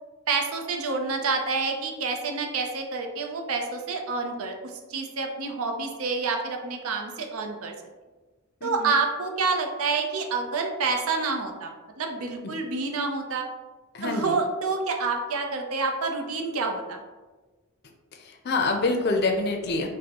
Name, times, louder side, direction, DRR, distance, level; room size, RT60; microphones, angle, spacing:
voice 1, 0.3-7.7 8.6-13.5 14.0-17.0, right 4 dB, 80° right, 3 dB, 0.6 m, -28 dB
voice 2, 8.6-9.0 12.4-12.5 13.9-14.4 18.1-19.9, left 3 dB, 50° left, 3 dB, 0.5 m, -26 dB
5.2 x 2.1 x 2.9 m, 1.3 s
head